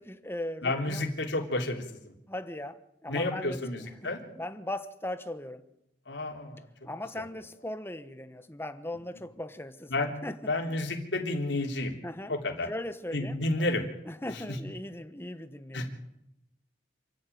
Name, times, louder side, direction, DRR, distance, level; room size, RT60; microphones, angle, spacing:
voice 1, 0.0-1.1 2.3-5.6 6.8-9.9 10.2-10.4 10.7-10.8 12.0-12.4 12.7-13.7 14.1-15.9, left 1 dB, 15° left, 11 dB, 1.1 m, -39 dB
voice 2, 0.6-2.1 3.1-4.2 6.1-6.7 7.2-7.3 9.9-10.1 10.5-11.9 12.3-12.7 13.1-13.8 14.3-14.4 15.7-15.9, left 2 dB, 80° left, 2 dB, 3.5 m, -31 dB
28.0 x 11.5 x 9.3 m, 0.86 s
head